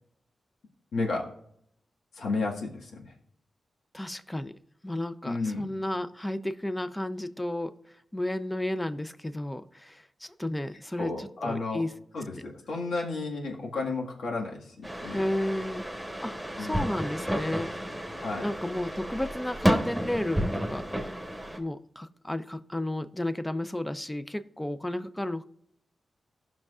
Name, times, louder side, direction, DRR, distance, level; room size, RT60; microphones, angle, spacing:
voice 1, 0.9-1.2 2.2-3.0 5.2-5.7 11.0-11.8 12.1-15.2 16.6-16.8 18.2-18.5, left 3 dB, 85° left, -2 dB, 1.8 m, -32 dB
voice 2, 3.9-4.5 4.8-7.7 8.1-11.9 12.3-12.4 15.1-15.9 16.2-18.0 18.4-21.1 21.6-25.4, left 1 dB, 10° left, 11 dB, 0.6 m, -33 dB
sound 1, 14.8-21.6, equal, 5° right, 1.3 m, -31 dB
17.5 x 6.0 x 2.5 m, 0.73 s
cardioid pair, 80°, 0 cm